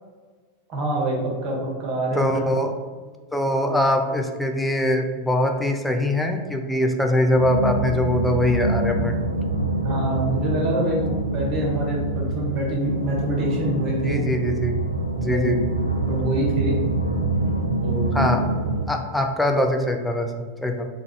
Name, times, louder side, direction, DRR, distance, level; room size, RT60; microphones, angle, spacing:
voice 1, 0.7-2.3 9.8-14.2 15.2-15.6 16.1-16.8 17.8-18.4, right 1 dB, 35° right, -3 dB, 1.1 m, -25 dB
voice 2, 2.1-2.7 3.3-9.1 14.0-14.8 15.2-15.6 18.1-18.4 18.9-20.9, left 1 dB, 5° left, 3 dB, 0.4 m, -22 dB
sound 1, 7.4-18.9, right 2 dB, 85° right, 0.3 m, -25 dB
3.4 x 2.4 x 3.3 m, 1.4 s
figure-of-eight pair, 90°, 0 cm